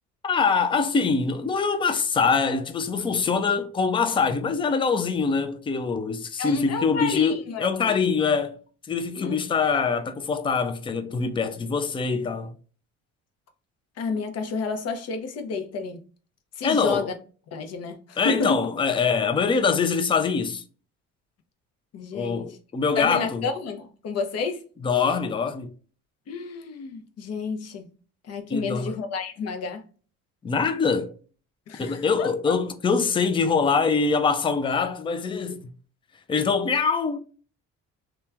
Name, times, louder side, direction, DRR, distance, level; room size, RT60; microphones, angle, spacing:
voice 1, 0.2-8.6 8.9-12.5 16.6-17.1 18.2-20.6 22.1-23.5 24.8-25.7 28.5-28.9 30.4-31.1 31.8-35.7 36.3-37.2, left 5 dB, 15° left, 0.4 m, -24 dB
voice 2, 6.4-8.1 9.1-9.4 14.0-16.0 16.6-17.1 17.5-18.6 21.9-22.5 23.0-24.6 26.3-27.9 28.2-29.9 31.7-32.5, left 4 dB, 50° left, 0.7 m, -30 dB
2.9 x 2.2 x 2.3 m
cardioid pair, 100°, 31 cm